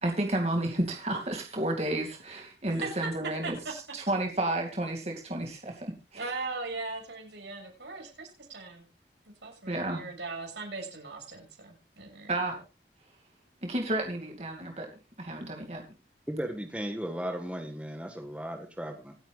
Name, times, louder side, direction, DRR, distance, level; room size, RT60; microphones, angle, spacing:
voice 1, 0.0-3.6 3.9-5.9 9.7-10.0 12.3-12.5 13.6-14.9 15.2-15.8, right 1 dB, 35° right, 2 dB, 2.4 m, -31 dB
voice 2, 2.7-4.0 6.1-8.9 9.4-12.6, right 3 dB, 85° right, 2 dB, 6.7 m, -39 dB
voice 3, 16.3-19.1, right 1 dB, 5° right, 4 dB, 1.6 m, -36 dB
26.0 x 9.1 x 2.5 m, 0.29 s
head